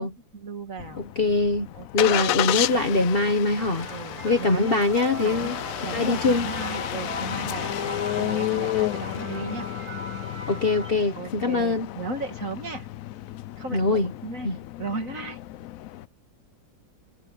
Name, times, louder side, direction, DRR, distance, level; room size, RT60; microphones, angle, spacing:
voice 1, 0.0-1.0 1.7-2.4 3.9-4.8 5.2-5.6 5.8-9.7 11.1-12.9 13.6-14.5 14.8-15.4, right 3 dB, 45° right, 2.5 m, -36 dB
Engine starting, 0.8-16.1, left 14 dB, 85° left, 0.7 m, -32 dB
voice 2, 1.0-1.7 1.9-3.9 4.2-5.6 5.9-6.5 10.5-11.9 13.7-14.1 14.4-14.6, left 3 dB, 35° left, 1.2 m, -23 dB
sound 1, 3.6-10.9, right 2 dB, 85° right, 5.2 m, -38 dB
omnidirectional pair, 2.0 m